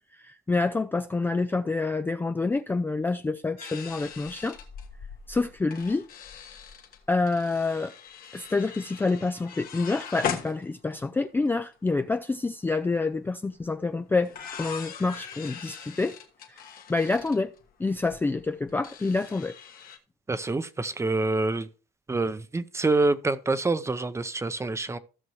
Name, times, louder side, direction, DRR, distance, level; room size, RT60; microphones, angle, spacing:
voice 1, 0.2-4.6 5.3-6.1 7.1-7.9 8.3-14.3 14.6-16.2 16.5-16.6 16.9-17.5 17.8-19.6, left 3 dB, 10° left, 0.4 m, -27 dB
sound 1, 3.6-11.2 11.5-11.6 11.7-12.1 13.6-13.7 14.2-20.0, left 7 dB, 60° left, 1.5 m, -40 dB
voice 2, 20.3-21.7 22.1-25.0, right 3 dB, 15° right, 0.7 m, -26 dB
15.5 x 6.1 x 3.1 m
cardioid pair, 110°, 17 cm